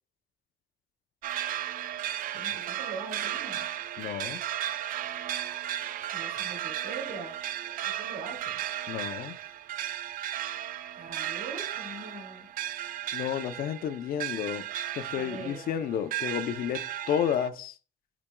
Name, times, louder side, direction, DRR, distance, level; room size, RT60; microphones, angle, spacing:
sound 1, 1.2-17.5, right 11 dB, 70° right, 0.4 m, -35 dB
voice 1, 2.3-3.7 6.0-7.4 7.6-8.6 11.0-12.5 15.1-15.6, right 3 dB, 85° right, 2.5 m, -42 dB
voice 2, 4.0-4.4 8.9-9.4 13.1-14.6 15.0-16.8 17.1-17.8, left 9 dB, 80° left, 0.6 m, -31 dB
8.7 x 5.1 x 2.3 m
cardioid pair, 135°, 15 cm